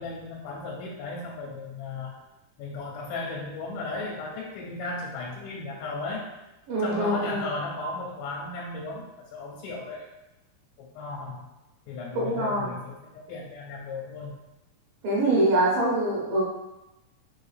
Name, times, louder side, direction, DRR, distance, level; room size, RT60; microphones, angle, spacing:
voice 1, 0.0-2.1 2.6-6.3 6.8-10.1 10.8-11.5 11.9-14.4, left 3 dB, 85° left, -2 dB, 2.4 m, -35 dB
voice 2, 6.7-7.5 12.1-12.7 15.0-16.4, right 1 dB, 80° right, -5 dB, 2.9 m, -24 dB
6.5 x 2.4 x 3.2 m, 0.98 s
omnidirectional pair, 4.1 m